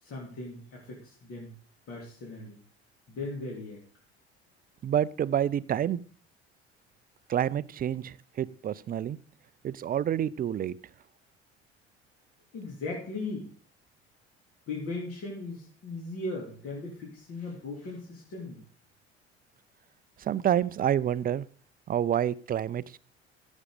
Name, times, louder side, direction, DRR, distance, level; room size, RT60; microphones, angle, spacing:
voice 1, 0.0-1.5 1.9-2.6 3.1-3.8 12.5-13.5 14.7-18.6, left 2 dB, 45° left, 3.2 m, -38 dB
voice 2, 4.8-6.0 7.3-9.2 9.6-10.8 20.2-21.5 21.9-23.0, right 10 dB, 25° right, 0.6 m, -28 dB
16.0 x 7.4 x 5.0 m
figure-of-eight pair, 60°, 33 cm